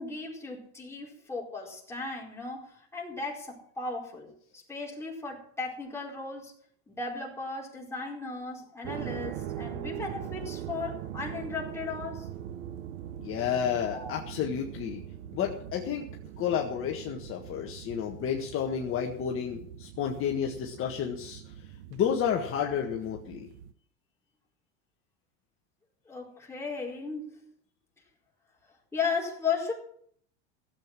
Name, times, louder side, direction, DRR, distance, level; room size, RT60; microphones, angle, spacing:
voice 1, 0.0-6.5 6.9-12.3 13.9-14.1 26.1-27.4 28.9-29.7, left 4 dB, 5° left, -3 dB, 4.6 m, -36 dB
sound 1, 8.8-23.7, right 10 dB, 70° right, 1.0 m, -41 dB
voice 2, 13.2-15.0 15.3-16.0 16.4-23.5, left 8 dB, 35° left, 1 dB, 1.7 m, -31 dB
16.0 x 8.0 x 7.5 m, 0.63 s
supercardioid pair, 135°, 35 cm